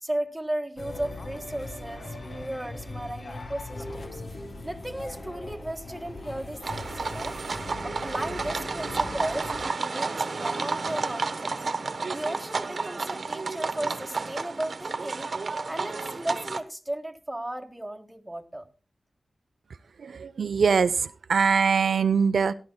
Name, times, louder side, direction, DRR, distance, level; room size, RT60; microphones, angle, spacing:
voice 1, 0.0-4.2 4.6-7.4 7.8-11.6 12.1-15.3 15.7-18.7, right 1 dB, 10° right, 5 dB, 1.6 m, -35 dB
sound 1, 0.8-9.7, left 2 dB, 50° left, 1.9 m, -40 dB
sound 2, 6.6-16.6, right 4 dB, 60° right, 1.2 m, -31 dB
voice 2, 20.0-22.5, right 6 dB, 85° right, 12 dB, 0.5 m, -23 dB
17.5 x 11.5 x 2.2 m, 0.36 s
wide cardioid pair, 70°, 0 cm